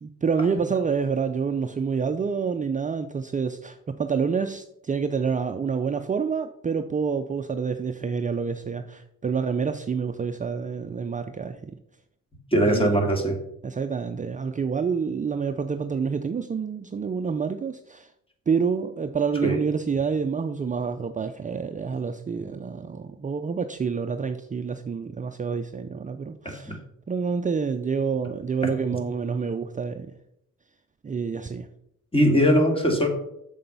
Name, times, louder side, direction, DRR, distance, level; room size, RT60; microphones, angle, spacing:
voice 1, 0.0-11.8 12.7-13.0 13.6-18.1 18.5-26.8 27.1-30.1 31.0-31.7, right 5 dB, 25° right, 7 dB, 0.6 m, -28 dB
voice 2, 12.5-13.4 19.4-19.6 26.4-26.7 32.1-33.1, equal, 20° left, 2 dB, 2.6 m, -21 dB
7.4 x 7.0 x 5.4 m, 0.78 s
cardioid pair, 90°, 30 cm